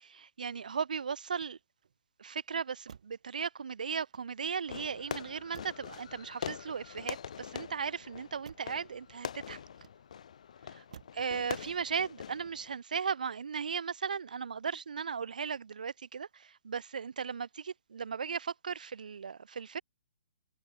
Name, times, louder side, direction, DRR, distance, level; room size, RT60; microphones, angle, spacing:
voice 1, 0.0-1.6 2.2-9.6 11.1-19.8, right 6 dB, 85° right, 0.6 m, -37 dB
Motor vehicle (road), 1.2-2.0 2.8-3.3 4.0-4.7 5.5-6.0 6.8-7.5 8.4-8.8 9.7-10.3 10.9-11.3 11.7-12.1, right 7 dB, 60° right, 2.0 m, -56 dB
Fireworks, 4.7-12.8, left 8 dB, 55° left, 0.7 m, -44 dB
hypercardioid pair, 170°, 4 cm